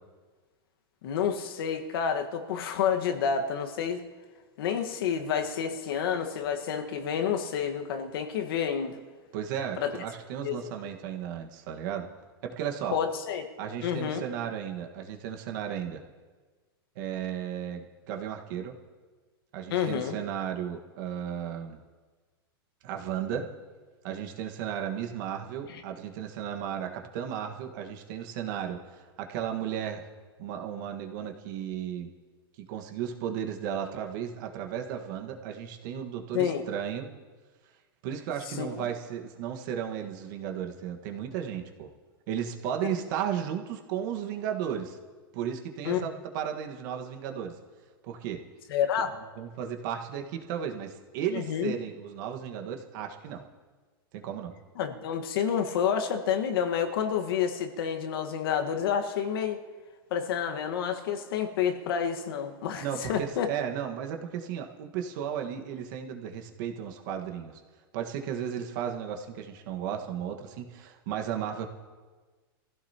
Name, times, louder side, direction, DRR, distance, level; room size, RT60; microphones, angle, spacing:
voice 1, 1.0-4.0 4.6-9.0 9.8-9.9 10.4-10.7 12.9-13.5 13.8-14.2 19.7-20.2 25.7-25.8 36.3-36.6 38.6-38.9 45.8-46.0 48.7-49.1 51.3-51.7 54.8-59.6 60.1-63.5, left 8 dB, 65° left, 5 dB, 1.5 m, -29 dB
voice 2, 9.3-12.1 12.4-13.0 13.6-16.0 16.9-18.7 19.5-21.8 22.8-23.5 24.0-30.1 30.4-32.1 32.6-37.1 38.0-41.9 42.3-45.0 45.3-47.5 48.0-48.4 49.4-53.4 54.1-54.5 62.8-67.6 67.9-71.7, right 9 dB, 50° right, 4 dB, 1.6 m, -34 dB
24.0 x 15.5 x 2.9 m, 1.4 s
supercardioid pair, 150°, 13 cm